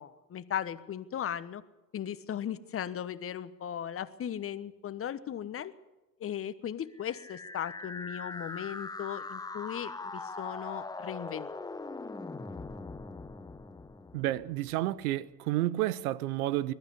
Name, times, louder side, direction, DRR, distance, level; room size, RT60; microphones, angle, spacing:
voice 1, 0.0-1.6 1.9-5.7 6.2-11.5, left 9 dB, 30° left, 1.2 m, -37 dB
sound 1, 7.0-14.9, left 3 dB, 10° left, 1.0 m, -41 dB
voice 2, 14.1-16.7, right 15 dB, 65° right, 1.0 m, -30 dB
21.0 x 13.0 x 9.8 m
hypercardioid pair, 75°, 48 cm